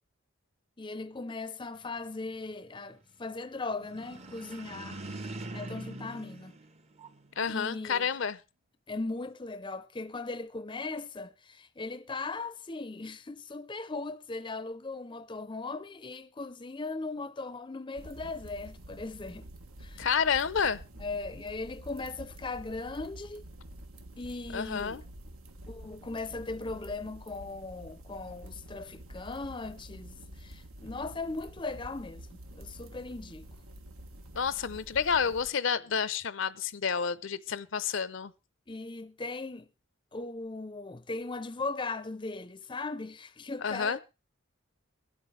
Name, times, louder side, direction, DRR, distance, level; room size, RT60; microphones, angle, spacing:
voice 1, 0.8-6.5 7.5-8.1 8.9-19.5 19.8-20.1 21.0-23.4 24.2-25.0 25.7-32.3 32.5-33.5 38.7-39.7 40.1-44.0, left 3 dB, 25° left, 0.5 m, -38 dB
sound 1, 3.8-7.4, right 2 dB, 30° right, 0.7 m, -43 dB
voice 2, 7.4-8.4 20.0-20.8 24.5-25.0 34.4-38.3 43.6-44.0, left 6 dB, 65° left, 0.6 m, -29 dB
sound 2, 17.9-35.5, right 1 dB, 90° right, 1.5 m, -48 dB
23.0 x 8.5 x 3.2 m
head